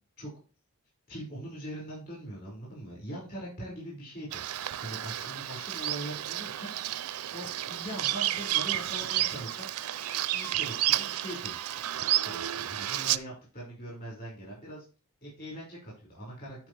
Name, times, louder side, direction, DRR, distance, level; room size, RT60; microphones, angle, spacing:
voice 1, 1.1-9.7 10.3-11.5 12.2-14.8 15.2-16.7, right 1 dB, 45° left, -5 dB, 5.3 m, -42 dB
Bird vocalization bird call bird song, 4.3-13.2, right 14 dB, 80° right, 0.5 m, -31 dB
11.5 x 5.2 x 3.3 m, 0.33 s
head